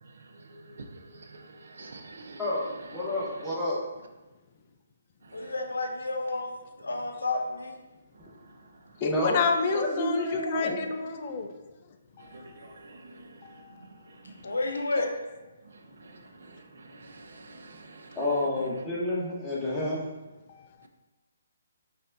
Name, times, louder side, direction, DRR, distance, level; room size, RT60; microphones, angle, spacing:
voice 1, 0.0-3.5 5.2-5.5 6.9-7.0 8.2-9.0 12.2-14.6 15.6-18.2 20.8-20.9, right 3 dB, 70° right, 0.4 m, -49 dB
voice 2, 2.9-3.8 9.0-10.8 18.2-20.1, left 1 dB, 5° left, 1.0 m, -29 dB
voice 3, 5.3-6.5 6.8-7.8 14.4-15.1, left 2 dB, 85° left, 0.6 m, -30 dB
voice 4, 9.0-11.5 12.2-12.7 13.4-13.9 14.9-15.1 20.5-20.9, left 5 dB, 40° left, 0.4 m, -30 dB
5.2 x 2.4 x 2.5 m
hypercardioid pair, 145°, 0 cm